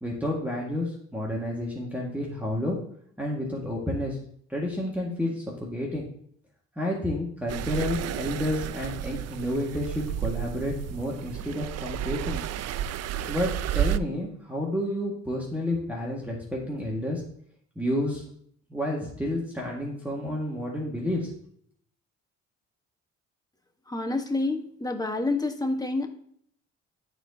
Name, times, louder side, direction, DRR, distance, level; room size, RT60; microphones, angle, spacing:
voice 1, 0.0-2.8 3.2-4.2 4.5-6.1 6.8-12.4 13.3-17.2 17.8-18.2 18.7-21.3, left 1 dB, 5° right, -3 dB, 1.7 m, -30 dB
sound 1, 7.5-14.0, right 11 dB, 55° right, 0.4 m, -31 dB
voice 2, 23.9-26.1, left 2 dB, 15° left, 4 dB, 1.2 m, -28 dB
12.5 x 4.5 x 2.7 m, 0.63 s
cardioid pair, 90°, 30 cm